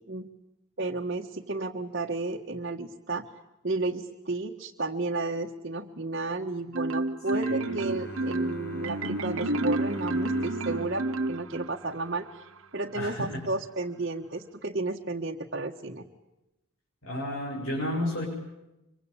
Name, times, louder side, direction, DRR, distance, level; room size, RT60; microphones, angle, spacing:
voice 1, 0.8-3.2 3.6-12.4 12.7-16.1, right 2 dB, 45° right, -1 dB, 1.6 m, -32 dB
Marimba xylophone, 6.7-11.9, right 2 dB, 70° right, 1.0 m, -30 dB
voice 2, 7.3-7.7 12.9-13.4 17.0-18.2, left 1 dB, 70° left, -2 dB, 7.2 m, -32 dB
Bowed string instrument, 7.7-12.6, left 2 dB, 45° left, 1.5 m, -42 dB
26.0 x 24.5 x 8.6 m, 0.94 s
head